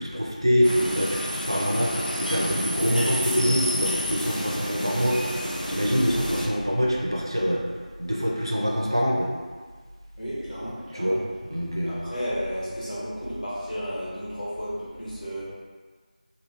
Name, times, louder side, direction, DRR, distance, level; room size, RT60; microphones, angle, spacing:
voice 1, 0.0-5.2 5.7-7.7 8.0-9.3 10.9-12.0, equal, 35° right, -2 dB, 0.4 m, -25 dB
sound 1, 0.6-6.5, equal, 90° left, 0.6 m, -30 dB
voice 2, 10.2-11.1 11.9-14.7 15.0-15.4, equal, 65° left, -9 dB, 1.4 m, -33 dB
3.1 x 2.2 x 3.2 m, 1.5 s
figure-of-eight pair, 180°, 5 cm